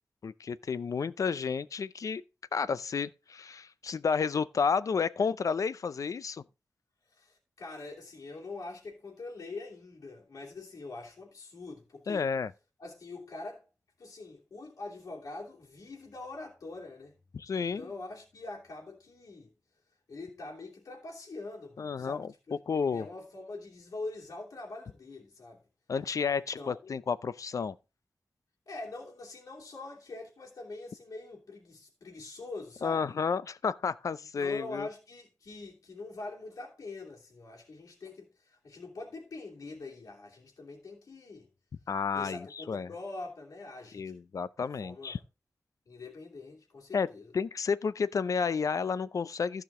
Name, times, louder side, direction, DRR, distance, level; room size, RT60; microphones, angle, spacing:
voice 1, 0.2-2.2 2.5-6.4 12.1-12.5 17.3-17.9 21.8-23.1 25.9-27.8 32.8-34.9 41.9-42.9 43.9-45.2 46.9-47.1 47.3-49.6, left 5 dB, 70° left, 0.5 m, -31 dB
voice 2, 7.1-12.3 12.8-13.6 14.0-17.1 17.7-19.5 20.1-25.6 26.6-27.0 28.7-33.0 34.4-41.5 42.1-44.1 44.8-45.2 45.9-47.3, left 3 dB, 85° left, 2.9 m, -44 dB
15.0 x 5.0 x 3.7 m
wide cardioid pair, 110°, 6 cm